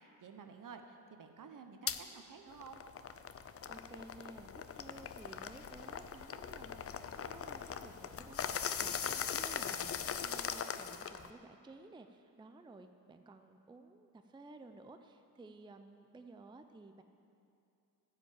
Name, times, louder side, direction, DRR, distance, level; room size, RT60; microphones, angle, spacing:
voice 1, 0.0-2.8, right 5 dB, 55° right, 6 dB, 1.0 m, -52 dB
sound 1, 1.9-2.0 2.5-11.3, left 7 dB, 40° left, 0.5 m, -40 dB
voice 2, 3.6-6.8 7.3-17.0, right 2 dB, 15° right, 7 dB, 0.5 m, -55 dB
11.0 x 5.2 x 8.5 m, 2.6 s
cardioid pair, 80°, 38 cm